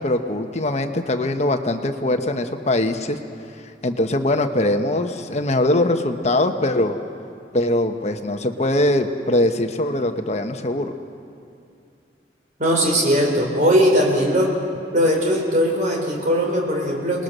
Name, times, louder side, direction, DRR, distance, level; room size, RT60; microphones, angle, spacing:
voice 1, 0.0-3.2 3.8-7.0 7.5-10.9, left 1 dB, 40° left, 6 dB, 1.1 m, -21 dB
voice 2, 12.6-14.5 14.9-17.2, equal, 45° right, 0 dB, 4.0 m, -19 dB
28.0 x 20.0 x 6.7 m, 2.5 s
head